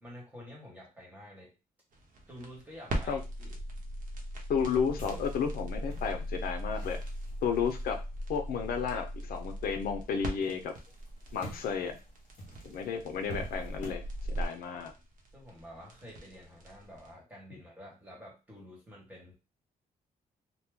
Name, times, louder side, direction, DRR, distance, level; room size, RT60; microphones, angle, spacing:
voice 1, 0.0-1.5 2.3-3.5 15.3-19.3, equal, 10° right, -3 dB, 1.4 m, -49 dB
sound 1, 1.9-17.1, equal, 60° right, 0.9 m, -40 dB
voice 2, 4.5-7.0 7.4-8.0 8.3-10.7 11.3-12.0 12.6-14.9, left 6 dB, 80° left, 6 dB, 0.5 m, -32 dB
sound 2, 4.6-9.8 10.1-14.5, right 1 dB, 55° left, 1.1 m, -42 dB
2.9 x 2.2 x 3.5 m, 0.29 s
cardioid pair, 140°, 15 cm